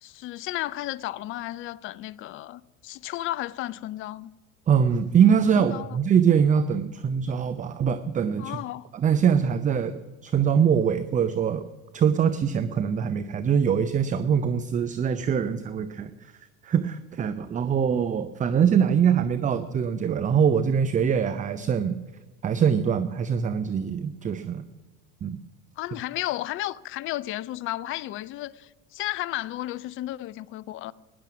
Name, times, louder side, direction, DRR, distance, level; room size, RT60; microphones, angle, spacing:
voice 1, 0.0-4.3 5.6-6.0 8.4-8.9 25.8-30.9, left 15 dB, 30° left, 0.4 m, -33 dB
voice 2, 4.7-8.6 8.9-11.6 11.9-16.3 16.6-22.0 22.4-24.6 25.2-25.4, right 7 dB, 20° right, 0.5 m, -23 dB
17.0 x 10.5 x 6.1 m
figure-of-eight pair, 70°, 41 cm